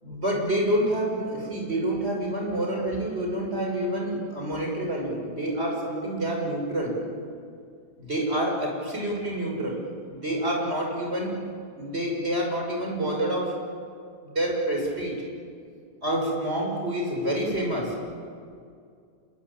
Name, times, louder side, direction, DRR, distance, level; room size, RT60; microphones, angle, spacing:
voice 1, 0.0-7.0 8.0-11.4 11.8-13.6 14.2-15.2 16.0-18.0, right 1 dB, 40° right, 0 dB, 6.8 m, -28 dB
27.5 x 23.0 x 8.9 m, 2.3 s
omnidirectional pair, 1.7 m